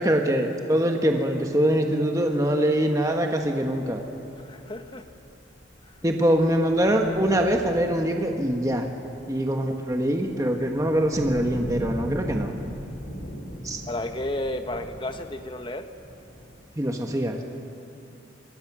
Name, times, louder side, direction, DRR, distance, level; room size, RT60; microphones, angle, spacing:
voice 1, 0.0-4.0 6.0-8.9 9.3-12.5 13.6-13.8 16.8-17.4, right 1 dB, 15° right, 3 dB, 1.3 m, -23 dB
sound 1, 2.0-2.2 2.6-2.7 3.0-16.6, equal, 75° left, 5.4 m, -40 dB
voice 2, 4.4-5.0 13.9-15.9, left 1 dB, 25° left, 7 dB, 1.1 m, -32 dB
27.0 x 22.0 x 6.1 m, 2.7 s
head